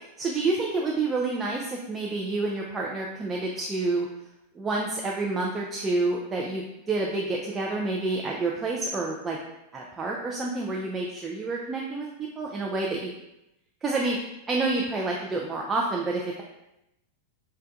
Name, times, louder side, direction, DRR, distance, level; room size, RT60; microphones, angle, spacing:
voice 1, 0.2-4.1 4.6-9.4 9.7-12.1 12.4-13.1 13.8-14.2 14.5-16.4, right 3 dB, 20° right, -2 dB, 0.4 m, -28 dB
4.3 x 2.2 x 2.5 m, 0.89 s
figure-of-eight pair, 90°, 0 cm